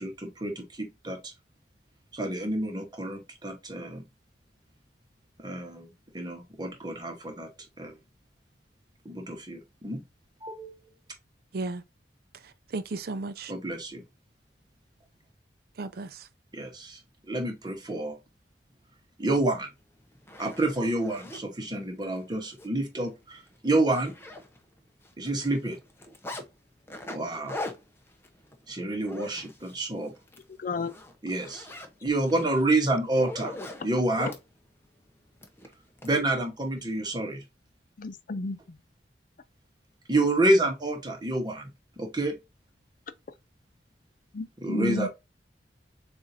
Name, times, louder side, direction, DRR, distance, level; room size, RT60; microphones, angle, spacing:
voice 1, 0.0-1.3 2.1-4.0 5.4-7.5 7.8-7.9 9.0-10.0 10.4-10.7 13.5-14.0 16.5-17.0 17.3-18.2 19.2-19.7 20.4-24.1 25.2-25.8 27.1-27.6 28.7-30.1 31.2-31.7 32.0-33.5 33.8-34.3 36.0-37.4 40.1-41.7 42.0-42.4 44.6-45.1, right 2 dB, 25° right, 1.1 m, -28 dB
voice 2, 11.5-11.8 12.3-13.5 15.8-16.3, right 3 dB, 60° right, 0.5 m, -35 dB
Zipper (clothing), 19.6-19.7 20.1-21.4 22.0-22.2 22.5-22.7 23.0-23.1 23.5-24.8 25.0-26.4 26.9-29.8 30.2-30.4 30.8-34.4 35.4-36.1, left 2 dB, 15° left, 0.7 m, -41 dB
voice 3, 30.6-30.9 38.0-38.8 44.3-45.1, left 3 dB, 50° left, 0.5 m, -32 dB
7.1 x 2.6 x 2.6 m
head